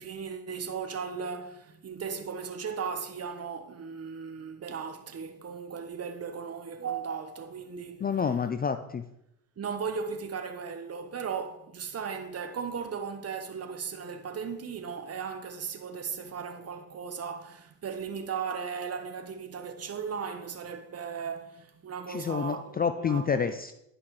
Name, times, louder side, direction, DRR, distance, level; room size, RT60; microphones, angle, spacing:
voice 1, 0.0-8.0 9.6-23.5, right 6 dB, 35° right, 1.2 m, -37 dB
voice 2, 8.0-9.0 22.1-23.7, left 6 dB, 25° left, 0.4 m, -28 dB
11.0 x 5.8 x 3.3 m
supercardioid pair, 70°, 41 cm